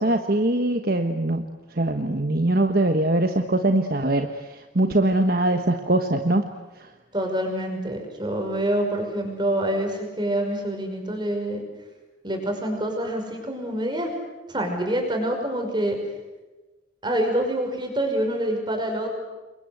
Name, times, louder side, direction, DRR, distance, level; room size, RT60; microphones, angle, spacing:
voice 1, 0.0-1.4 1.8-6.4, right 1 dB, 50° right, 6 dB, 1.3 m, -22 dB
voice 2, 7.1-11.6 12.2-14.1 14.5-16.0 17.0-19.1, right 1 dB, 25° right, 3 dB, 5.8 m, -26 dB
28.5 x 23.0 x 8.1 m, 1.2 s
head